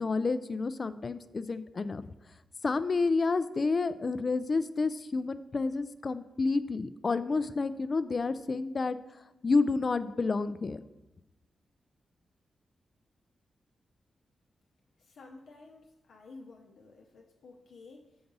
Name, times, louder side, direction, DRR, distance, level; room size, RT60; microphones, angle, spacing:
voice 1, 0.0-2.1 2.6-9.0 9.4-10.8, left 3 dB, 40° left, 14 dB, 0.3 m, -29 dB
voice 2, 15.0-18.2, left 3 dB, 80° left, 0 dB, 0.7 m, -52 dB
5.8 x 3.9 x 5.3 m, 1.0 s
cardioid pair, 90°, 0 cm